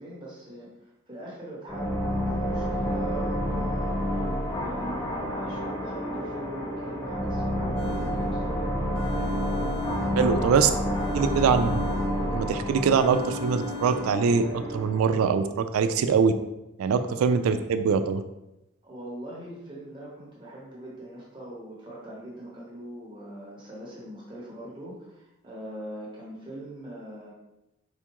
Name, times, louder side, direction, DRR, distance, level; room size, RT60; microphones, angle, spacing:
voice 1, 0.0-8.7 9.0-9.4 10.0-10.6 10.9-11.3 16.8-16.9 18.8-27.3, right 1 dB, 20° right, -5 dB, 0.7 m, -42 dB
sound 1, 1.7-15.0, equal, 15° left, 0.4 m, -29 dB
sound 2, 7.8-8.5 8.9-10.5 10.9-12.5 12.9-14.4, left 2 dB, 85° left, 0.5 m, -37 dB
voice 2, 10.2-10.7 11.1-11.8 12.3-16.3 16.8-18.2, right 6 dB, 85° right, 10 dB, 0.3 m, -23 dB
4.2 x 2.3 x 2.9 m, 0.91 s
head